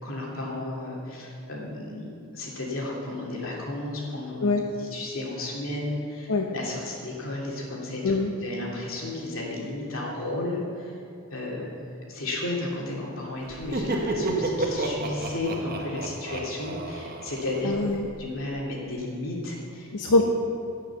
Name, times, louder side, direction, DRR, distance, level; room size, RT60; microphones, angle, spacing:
voice 1, 0.0-11.0 11.3-11.7 12.1-17.7 18.2-19.9, left 2 dB, 60° left, -3 dB, 2.9 m, -33 dB
Laughter, 13.5-18.2, right 2 dB, 40° right, 1.2 m, -31 dB
voice 2, 17.6-18.1 19.9-20.2, left 3 dB, 90° left, 2 dB, 0.8 m, -23 dB
16.5 x 6.3 x 7.1 m, 2.7 s
head